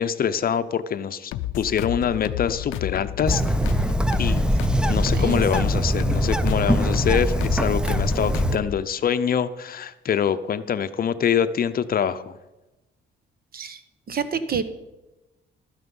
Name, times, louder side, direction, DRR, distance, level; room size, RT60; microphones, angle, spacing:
voice 1, 0.0-3.9 4.2-4.4 4.8-12.4, left 8 dB, 50° left, 12 dB, 0.6 m, -25 dB
sound 1, 1.3-8.8, left 14 dB, 90° left, 0.5 m, -31 dB
Bird, 3.3-8.6, right 1 dB, 5° right, 0.5 m, -22 dB
voice 2, 14.1-14.6, right 6 dB, 50° right, 12 dB, 1.0 m, -28 dB
12.5 x 9.5 x 5.4 m, 1.0 s
cardioid pair, 90°, 20 cm